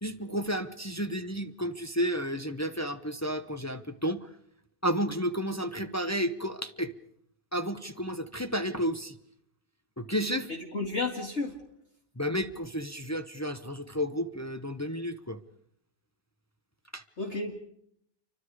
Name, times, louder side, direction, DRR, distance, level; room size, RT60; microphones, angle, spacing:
voice 1, 0.0-4.3 4.8-6.9 7.5-9.2 10.0-10.5 12.2-15.4 16.9-17.0, equal, 20° left, 8 dB, 0.5 m, -32 dB
voice 2, 10.7-11.6 17.2-17.5, left 3 dB, 40° left, 0 dB, 2.4 m, -31 dB
29.0 x 24.5 x 4.9 m, 0.71 s
omnidirectional pair, 1.8 m